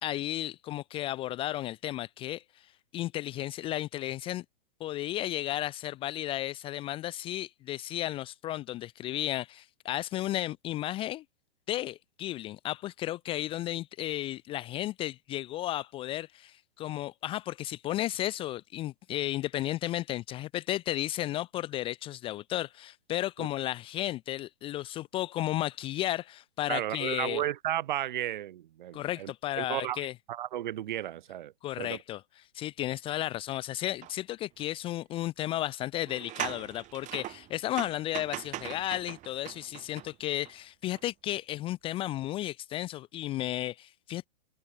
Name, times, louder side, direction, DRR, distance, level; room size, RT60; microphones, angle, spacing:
voice 1, 0.0-2.7 2.9-4.4 4.8-11.2 11.7-27.4 28.9-30.1 31.6-32.2 32.5-44.3, left 14 dB, 20° left, 0.6 m, -33 dB
voice 2, 26.7-32.0, right 12 dB, 50° right, 2.6 m, -34 dB
sound 1, 34.0-34.1 34.6-34.7 36.0-40.5 40.9-41.0, right 15 dB, 25° right, 2.8 m, -40 dB
figure-of-eight pair, 115°, 30 cm